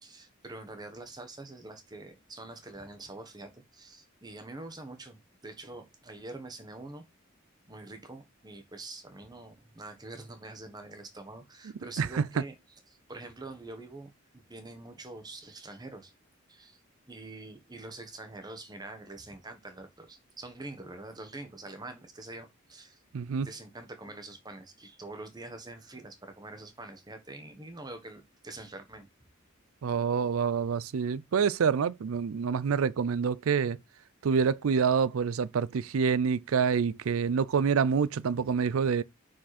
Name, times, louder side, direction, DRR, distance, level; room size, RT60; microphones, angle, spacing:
voice 1, 0.0-7.1 7.7-16.1 16.5-16.8 17.1-23.0 23.4-29.1, right 2 dB, 20° right, 1.2 m, -45 dB
voice 2, 23.1-23.5 29.8-33.8 34.2-39.0, right 6 dB, 80° right, 0.4 m, -27 dB
5.9 x 5.1 x 4.2 m
head